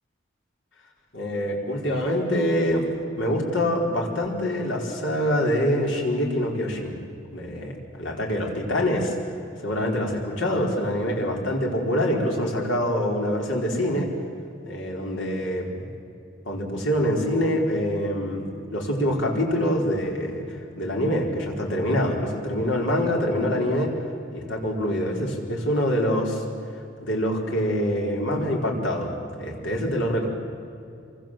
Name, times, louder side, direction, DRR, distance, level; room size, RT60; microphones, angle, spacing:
voice 1, 1.1-2.9 3.2-7.0 7.3-9.1 9.6-14.1 14.6-15.9 16.5-18.5 18.7-24.0 24.3-26.4 27.0-29.1 29.4-30.3, equal, 75° left, 0 dB, 4.8 m, -25 dB
27.5 x 24.0 x 7.8 m, 2.6 s
head